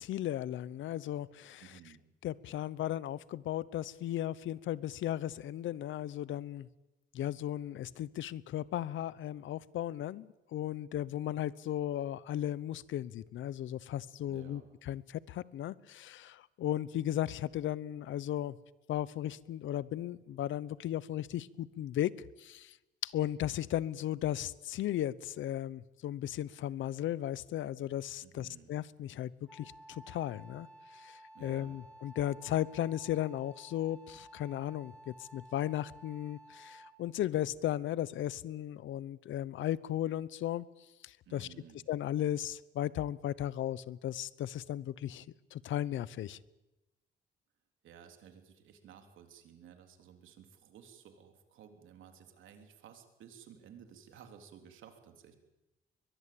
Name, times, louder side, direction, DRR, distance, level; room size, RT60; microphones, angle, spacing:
voice 1, 0.0-1.6 2.2-6.7 7.1-14.6 14.9-18.6 18.9-22.1 22.4-22.8 23.0-30.7 30.9-40.6 41.0-41.5 41.9-45.3 45.5-46.4, left 12 dB, 75° left, 19 dB, 0.9 m, -36 dB
voice 2, 1.6-2.0 14.3-14.6 28.2-28.7 31.3-31.8 41.2-41.9 47.8-55.3, right 8 dB, 80° right, 5 dB, 3.4 m, -55 dB
Wind instrument woodwind instrument, 29.5-37.1, right 1 dB, 5° left, 3.7 m, -55 dB
22.5 x 21.5 x 8.6 m, 1.0 s
cardioid pair, 90°, 20 cm